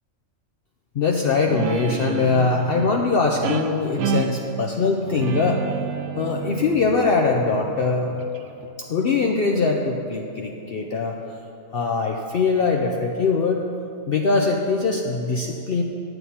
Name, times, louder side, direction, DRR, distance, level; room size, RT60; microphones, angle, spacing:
voice 1, 0.9-5.6 6.2-8.2 8.9-11.2 11.7-13.6 14.1-15.8, left 4 dB, 55° left, 1 dB, 0.7 m, -22 dB
Guitar, 1.5-8.7, right 7 dB, 70° right, 0.9 m, -30 dB
11.0 x 7.9 x 4.3 m, 2.9 s
omnidirectional pair, 1.4 m